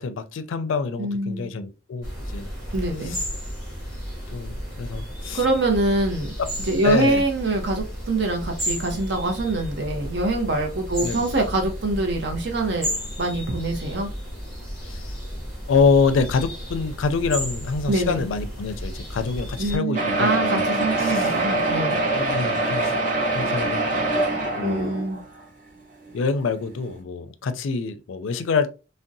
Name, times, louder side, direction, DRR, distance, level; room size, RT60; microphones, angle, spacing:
voice 1, 0.0-2.5 3.0-3.2 4.3-5.4 6.4-6.5 6.8-7.2 11.0-11.3 14.8-15.2 15.7-20.6 21.0-21.4 21.9-23.0 23.3-23.8 24.6-24.9 26.1-28.7, left 5 dB, 85° left, 0.4 m, -26 dB
voice 2, 1.0-1.5 2.7-3.2 5.3-6.3 6.7-12.9 13.2-14.1 17.9-18.3 19.6-22.1 24.6-25.2, right 2 dB, 60° right, 0.6 m, -24 dB
sound 1, 2.0-19.8, equal, 15° right, 1.3 m, -33 dB
sound 2, 19.9-25.4 26.1-26.2 26.4-26.5 26.9-27.0, right 2 dB, 40° right, 1.0 m, -24 dB
3.6 x 2.1 x 2.6 m
head